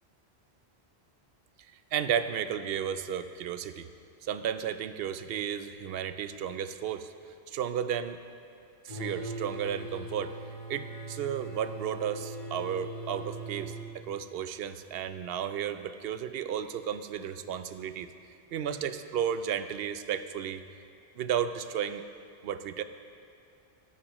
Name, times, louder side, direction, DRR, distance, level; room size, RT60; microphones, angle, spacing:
voice 1, 1.9-3.9 4.2-7.1 7.5-8.2 8.8-10.3 10.7-13.8 14.0-18.1 18.5-20.6 21.2-22.0 22.4-22.8, right 9 dB, 70° right, 11 dB, 0.7 m, -33 dB
sound 1, 8.9-13.8, right 1 dB, 50° left, 2.5 m, -40 dB
18.0 x 9.8 x 3.0 m, 2.4 s
omnidirectional pair, 1.1 m